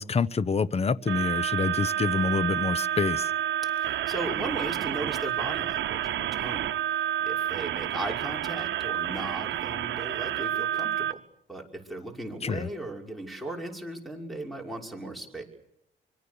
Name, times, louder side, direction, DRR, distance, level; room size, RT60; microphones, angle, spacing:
voice 1, 0.0-3.3 12.4-12.7, left 5 dB, 30° left, 0.9 m, -27 dB
sound 1, 1.1-11.1, right 12 dB, 70° right, 1.0 m, -29 dB
voice 2, 3.7-11.2 11.5-15.4, right 2 dB, ahead, 5.9 m, -37 dB
25.0 x 23.5 x 7.0 m
cardioid pair, 90°, 20 cm